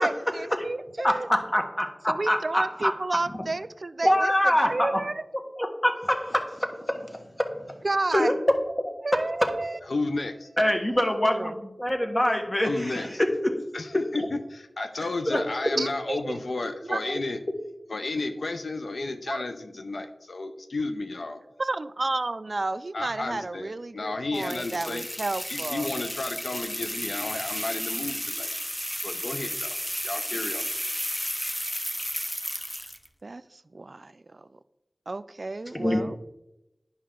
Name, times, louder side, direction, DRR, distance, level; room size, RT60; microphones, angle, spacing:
voice 1, 0.0-1.3 2.1-4.3 4.6-5.2 7.8-8.3 9.0-9.8 11.2-11.5 15.8-16.4 16.9-17.2 19.3-19.4 21.6-25.9 33.2-34.6 35.1-36.2, right 2 dB, 55° right, 14 dB, 0.3 m, -31 dB
voice 2, 1.0-2.9 4.0-5.0 5.6-7.8 8.1-9.6 10.6-13.6 14.1-14.3 15.0-15.4 35.7-36.0, equal, 25° left, 5 dB, 1.1 m, -25 dB
voice 3, 9.9-10.5 12.6-13.1 13.7-17.4 17.9-21.4 22.9-25.1 25.5-28.6 29.0-29.8 30.0-30.7, left 2 dB, 85° left, 6 dB, 0.6 m, -32 dB
sound 1, 24.3-33.1, equal, 5° left, 0.6 m, -33 dB
10.5 x 5.5 x 3.7 m, 0.93 s
wide cardioid pair, 60°, 0 cm